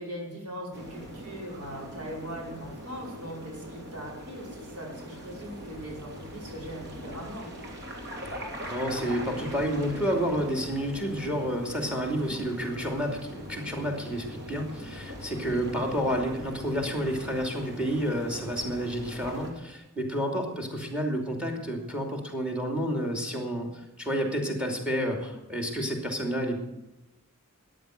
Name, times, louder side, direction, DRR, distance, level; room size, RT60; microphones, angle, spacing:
voice 1, 0.0-7.6, right 1 dB, 75° right, -2 dB, 5.4 m, -40 dB
sound 1, 0.7-19.5, equal, 50° right, 2.7 m, -41 dB
voice 2, 8.7-26.6, equal, 5° right, 3 dB, 2.7 m, -30 dB
14.0 x 10.0 x 6.5 m, 0.93 s
head